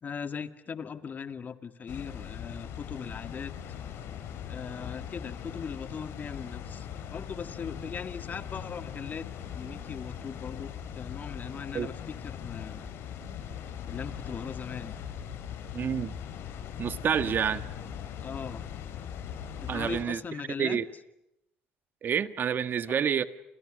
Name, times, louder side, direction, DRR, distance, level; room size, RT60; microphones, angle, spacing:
voice 1, 0.0-3.5 4.5-9.3 9.5-12.9 13.9-14.9 17.2-17.3 18.2-18.6 19.6-20.8 22.9-23.0, left 6 dB, 40° left, 2.1 m, -39 dB
Water, 1.9-20.0, left 8 dB, 75° left, 5.0 m, -40 dB
voice 2, 15.7-16.1 16.8-17.6 19.7-20.2 20.6-20.8 22.0-23.2, right 8 dB, 50° right, 1.6 m, -28 dB
29.5 x 29.0 x 6.4 m
supercardioid pair, 85°, 4 cm